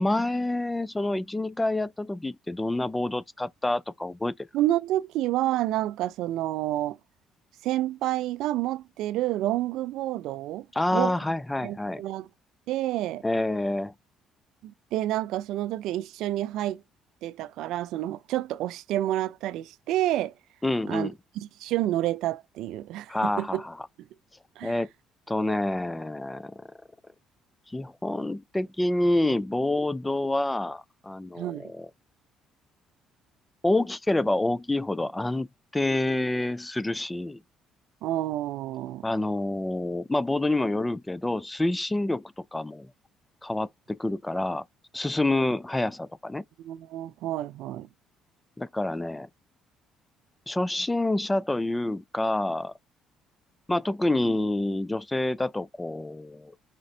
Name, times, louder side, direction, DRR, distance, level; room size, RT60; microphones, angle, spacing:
voice 1, 0.0-4.3 10.7-12.0 13.2-13.9 20.6-21.2 23.1-23.8 24.6-24.9 25.3-26.7 27.7-31.9 33.6-35.5 35.7-37.4 39.0-42.9 43.4-44.6 44.9-46.4 48.6-49.3 50.5-52.7 53.7-56.5, left 2 dB, 15° left, 0.3 m, -27 dB
voice 2, 4.5-7.0 7.6-10.7 10.9-11.1 11.6-12.3 12.7-13.2 14.6-16.8 17.2-20.3 20.9-21.1 21.6-23.6 24.6-24.8 31.4-31.7 38.0-39.1 46.6-47.9, right 14 dB, 75° right, 0.3 m, -29 dB
5.1 x 2.4 x 3.3 m
supercardioid pair, 70°, 0 cm